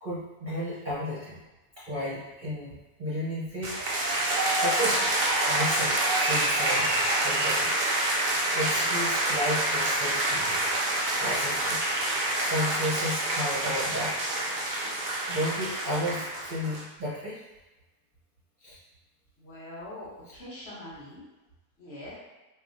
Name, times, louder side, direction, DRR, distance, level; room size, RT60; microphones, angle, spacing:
voice 1, 0.0-1.4 1.8-3.8 4.6-5.1 5.4-6.9 7.2-7.7 8.5-10.7 11.2-11.8 12.1-14.2 15.3-17.4 18.6-18.8, equal, 40° right, -9 dB, 0.7 m, -33 dB
sound 1, 3.6-16.8, right 1 dB, 80° right, 0.4 m, -27 dB
voice 2, 19.4-21.2 21.8-22.1, left 1 dB, 50° left, -7 dB, 1.1 m, -43 dB
4.7 x 2.4 x 2.6 m, 1.1 s
omnidirectional pair, 1.6 m